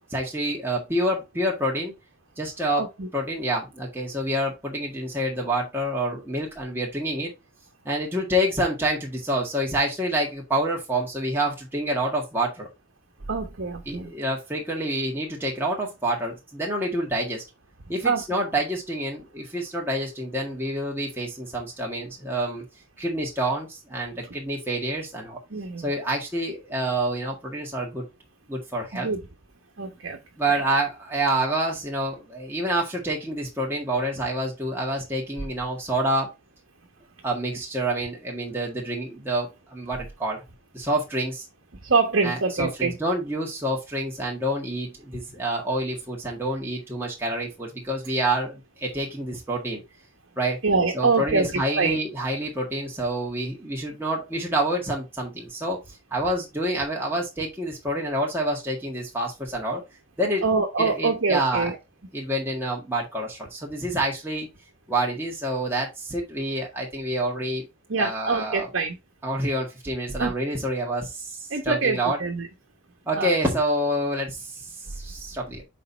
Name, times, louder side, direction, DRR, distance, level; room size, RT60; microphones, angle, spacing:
voice 1, 0.1-1.9 2.4-2.9 3.1-7.3 7.9-12.7 13.9-17.4 17.9-22.6 23.0-25.4 25.8-28.1 28.5-29.1 30.4-36.3 37.2-40.4 40.7-41.5 42.2-49.8 50.4-50.6 50.9-55.8 56.1-59.8 60.2-60.5 60.8-61.7 62.1-64.5 64.9-67.7 68.0-68.7 69.2-72.2 73.1-75.6, right 1 dB, 10° right, 1.8 m, -27 dB
voice 2, 2.8-3.1 13.3-14.1 18.0-18.2 25.5-25.9 28.9-29.2 29.8-30.2 30.5-30.6 41.8-43.0 50.6-52.0 60.4-61.7 67.9-69.0 70.2-70.3 71.5-72.5 73.1-73.4, right 4 dB, 65° right, 1.1 m, -25 dB
6.5 x 4.2 x 4.0 m
head